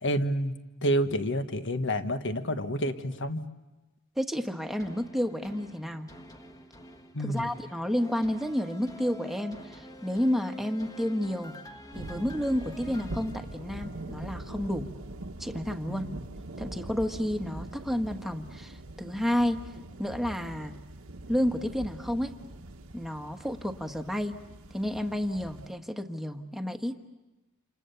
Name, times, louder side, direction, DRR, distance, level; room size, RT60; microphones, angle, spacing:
voice 1, 0.0-0.5 0.8-3.5 7.1-7.5 15.9-16.1, equal, 60° left, 9 dB, 1.4 m, -29 dB
voice 2, 4.2-6.1 7.2-11.5 11.9-14.9 15.4-16.1 16.6-19.6 20.0-20.7 21.3-22.3 22.9-24.3 24.7-27.0, equal, ahead, 4 dB, 1.3 m, -30 dB
sound 1, 4.8-14.2 14.7-14.8, equal, 15° left, 1.5 m, -48 dB
sound 2, 11.9-25.7, right 2 dB, 70° right, 1.3 m, -42 dB
28.5 x 28.0 x 7.0 m, 1.1 s
head